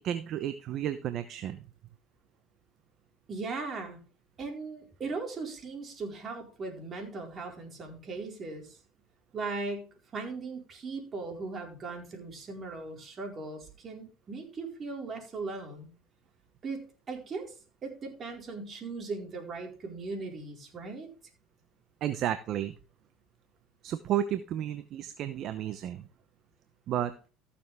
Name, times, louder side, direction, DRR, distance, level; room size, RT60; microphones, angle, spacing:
voice 1, 0.0-1.7 22.0-22.7 23.8-26.1 26.9-27.1, right 11 dB, 55° right, 11 dB, 0.8 m, -32 dB
voice 2, 3.3-4.0 4.4-8.8 9.3-9.9 10.1-15.9 16.6-16.8 17.1-17.5 17.8-21.1, right 3 dB, 40° right, 1 dB, 4.4 m, -38 dB
15.0 x 7.0 x 3.5 m, 0.36 s
supercardioid pair, 90°, 0 cm